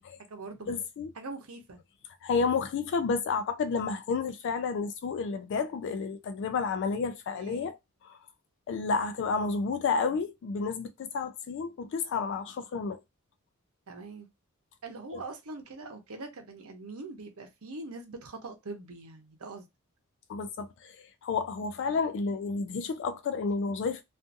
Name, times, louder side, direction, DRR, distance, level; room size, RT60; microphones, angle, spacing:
voice 1, 0.0-0.7 1.1-1.8 7.3-7.7 13.9-14.3 14.8-19.7, right 3 dB, 75° right, 0.8 m, -43 dB
voice 2, 0.7-1.1 2.2-7.8 8.1-8.2 8.7-13.0 20.3-21.0 21.2-24.0, left 5 dB, 55° left, 0.3 m, -30 dB
2.5 x 2.5 x 2.5 m
head